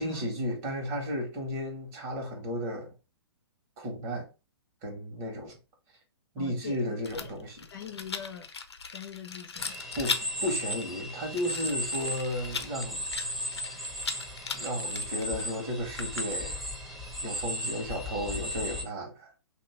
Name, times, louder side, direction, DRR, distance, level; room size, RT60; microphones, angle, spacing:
voice 1, 0.0-2.9 3.8-4.3 4.8-5.6 6.3-7.5 10.0-13.0 14.5-16.6 17.2-19.4, equal, 35° right, 1.8 m, -34 dB
voice 2, 6.4-7.3 7.7-8.5 8.8-9.8, left 7 dB, 55° left, 0.9 m, -43 dB
Rattle, 7.0-16.6, left 5 dB, 80° left, 0.7 m, -39 dB
sound 1, 9.6-18.8, equal, 5° right, 1.2 m, -36 dB
3.0 x 2.9 x 4.4 m
hypercardioid pair, 125°, 14 cm